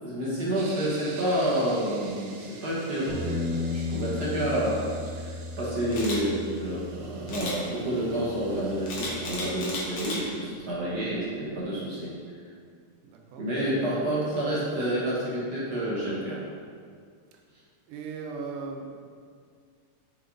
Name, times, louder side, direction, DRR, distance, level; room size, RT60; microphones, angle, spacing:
voice 1, 0.0-4.8 5.1-12.1 13.4-16.4, right 1 dB, 45° right, -7 dB, 1.4 m, -29 dB
sound 1, 0.5-10.1, right 3 dB, 75° right, 1.5 m, -48 dB
Bass guitar, 3.1-9.3, left 3 dB, 90° left, 2.6 m, -36 dB
Camera, 5.9-6.2 7.3-7.6 8.9-10.2 10.7-10.9, left 2 dB, 55° left, 2.0 m, -34 dB
voice 2, 13.0-13.4 17.3-17.4 17.9-19.1, right 4 dB, 90° right, 1 dB, 2.4 m, -38 dB
6.6 x 6.0 x 3.9 m, 2.1 s
omnidirectional pair, 3.6 m